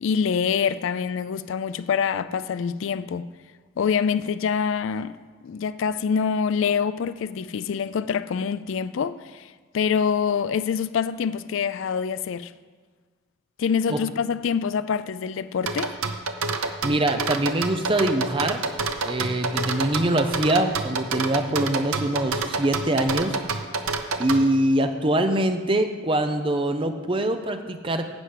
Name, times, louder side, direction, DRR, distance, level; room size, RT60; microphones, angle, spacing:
voice 1, 0.0-3.3 3.8-5.2 5.4-12.5 13.6-16.0, left 6 dB, 60° left, 0.3 m, -25 dB
sound 1, 15.7-24.4, right 4 dB, 80° right, 0.7 m, -27 dB
voice 2, 16.6-18.6 19.0-23.4 24.2-28.0, right 1 dB, 25° right, 0.6 m, -24 dB
11.5 x 5.0 x 8.2 m
head